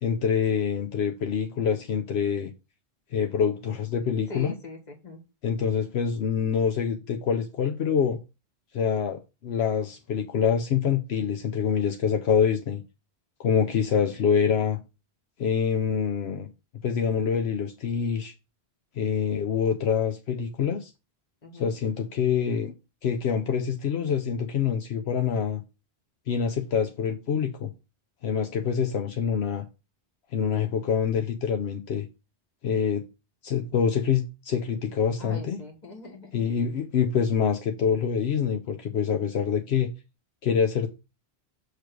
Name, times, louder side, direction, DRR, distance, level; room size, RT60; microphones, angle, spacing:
voice 1, 0.0-2.5 3.1-4.5 5.4-8.2 8.7-12.8 13.4-14.8 15.4-16.5 16.8-18.3 19.0-20.9 21.5-22.7 23.0-25.6 26.3-27.7 28.2-29.6 30.3-32.1 32.6-33.0 33.4-35.6 36.3-39.9 40.4-40.9, left 7 dB, 75° left, 0.9 m, -26 dB
voice 2, 4.3-5.2 21.4-21.7 35.2-36.4, left 4 dB, 40° left, 1.6 m, -41 dB
6.7 x 3.2 x 6.0 m
omnidirectional pair, 1.1 m